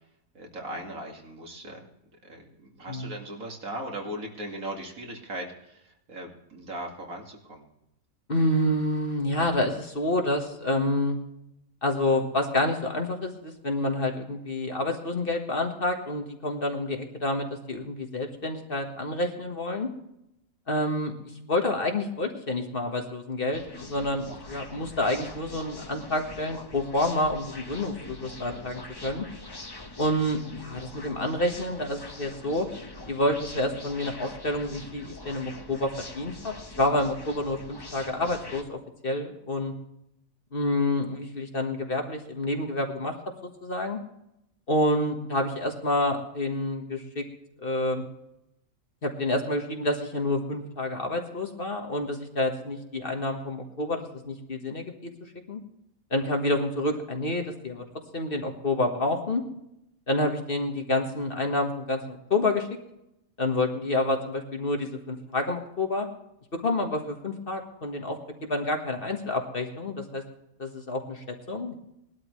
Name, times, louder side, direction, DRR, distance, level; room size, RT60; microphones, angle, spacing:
voice 1, 0.3-1.8 2.2-2.5 2.8-7.7, right 1 dB, 70° right, 1 dB, 2.6 m, -38 dB
voice 2, 8.3-11.2 11.8-19.9 20.7-21.1 21.5-29.2 30.0-32.7 33.1-39.7 40.5-43.1 43.4-44.0 44.7-47.2 47.6-48.0 49.0-55.1 55.5-55.6 56.1-57.8 58.1-59.4 60.1-62.7 63.4-66.1 66.5-70.2 70.6-71.7, left 1 dB, 40° left, 3 dB, 1.7 m, -28 dB
sound 1, 23.5-38.6, left 2 dB, 20° left, 1.0 m, -43 dB
20.0 x 12.0 x 3.2 m, 0.82 s
omnidirectional pair, 1.5 m